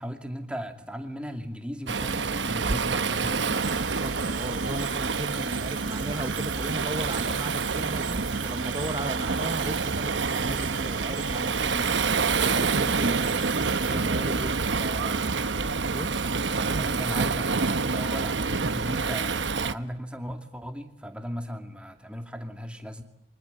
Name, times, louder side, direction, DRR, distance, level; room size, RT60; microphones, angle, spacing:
voice 1, 0.0-3.6 13.7-14.5 16.6-23.0, equal, 5° right, 5 dB, 2.4 m, -37 dB
Waves surf, 1.9-19.7, right 4 dB, 85° right, 1.1 m, -27 dB
sound 1, 3.5-13.9, right 9 dB, 45° right, 3.3 m, -42 dB
voice 2, 3.8-12.0 12.4-14.5 14.8-15.2 15.9-16.2 16.5-17.1, right 1 dB, 25° right, 10 dB, 1.4 m, -37 dB
28.5 x 25.0 x 8.1 m, 0.80 s
head